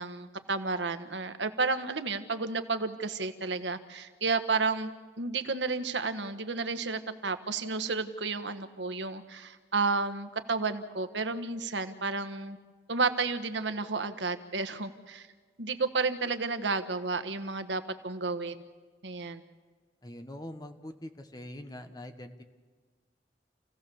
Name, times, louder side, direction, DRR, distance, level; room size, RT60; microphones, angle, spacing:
voice 1, 0.0-4.9 5.2-12.6 12.9-15.3 15.6-18.6 19.0-19.4, right 4 dB, 85° right, 9 dB, 1.3 m, -32 dB
voice 2, 20.0-22.4, left 1 dB, 20° left, 7 dB, 1.2 m, -43 dB
28.5 x 16.5 x 7.0 m, 1.4 s
head